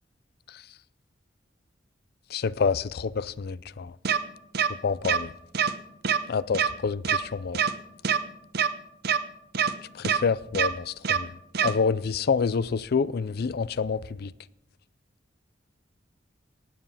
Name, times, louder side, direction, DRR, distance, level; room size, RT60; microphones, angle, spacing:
voice 1, 2.3-3.9 4.8-5.3 6.3-7.6 10.0-11.3 11.6-14.3, left 5 dB, 55° left, 0.4 m, -27 dB
sound 1, 4.0-4.2 4.5-4.7 5.0-5.2 5.5-5.7 6.0-6.2 6.5-6.7 7.0-7.2 7.5-7.7 8.0-8.2 8.5-8.7 9.0-9.2 9.5-9.7 10.0-10.2 10.5-10.7 11.0-11.2 11.5-11.7, right 7 dB, 55° right, 0.8 m, -23 dB
18.5 x 7.5 x 5.8 m
head